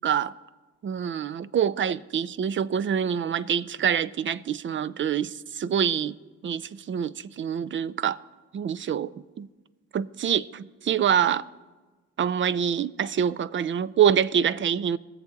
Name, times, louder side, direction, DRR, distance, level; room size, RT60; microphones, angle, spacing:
voice 1, 0.0-0.3 0.8-6.2 6.4-8.2 8.5-9.5 9.9-11.5 12.2-15.0, right 8 dB, 40° right, 0.4 m, -26 dB
20.5 x 7.3 x 3.9 m
cardioid pair, 75°, 29 cm